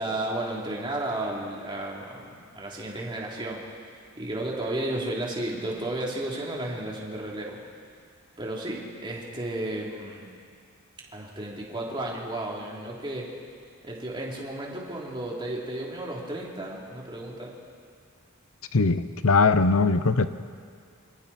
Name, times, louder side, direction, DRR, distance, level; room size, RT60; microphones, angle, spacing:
voice 1, 0.0-2.3 2.5-3.6 4.2-7.6 8.4-10.3 11.1-13.3 13.8-17.5, right 1 dB, 20° right, -3 dB, 3.4 m, -33 dB
voice 2, 18.7-20.3, left 4 dB, 70° left, 12 dB, 0.8 m, -21 dB
27.0 x 24.5 x 4.4 m, 2.1 s
head